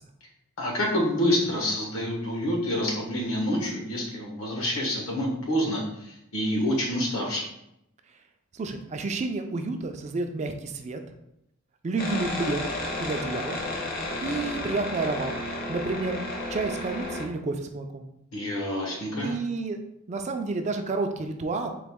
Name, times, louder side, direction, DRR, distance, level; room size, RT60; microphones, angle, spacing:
voice 1, 0.6-7.4 18.3-19.4, equal, 80° left, -1 dB, 1.2 m, -27 dB
voice 2, 8.5-11.0 11.8-12.6 13.0-13.6 14.2-15.3 15.7-16.2 16.5-18.1 19.2-19.8 20.1-21.7, right 3 dB, 35° right, 6 dB, 0.3 m, -30 dB
sound 1, 12.0-17.2, left 2 dB, 45° left, 0.7 m, -32 dB
4.0 x 2.9 x 3.5 m, 0.81 s
head